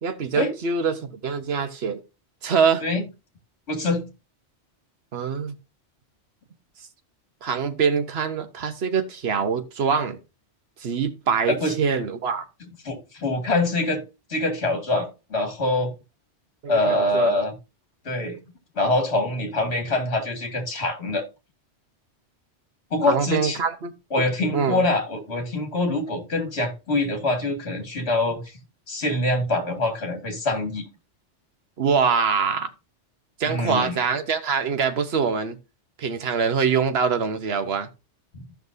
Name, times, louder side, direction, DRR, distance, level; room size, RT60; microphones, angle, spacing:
voice 1, 0.0-2.0 2.4-2.8 5.1-5.6 7.4-10.2 10.8-12.5 16.6-17.3 23.0-23.9 24.2-24.8 31.8-32.7 33.4-35.6 36.0-37.9, right 6 dB, 60° right, 1.2 m, -24 dB
voice 2, 3.7-4.0 11.5-11.7 12.8-14.0 14.3-15.9 16.7-17.5 18.1-18.4 18.8-21.2 22.9-23.6 24.1-28.4 28.9-30.9 33.4-34.0 38.3-38.4, left 2 dB, 65° left, 2.3 m, -24 dB
15.0 x 5.8 x 2.7 m
omnidirectional pair, 1.2 m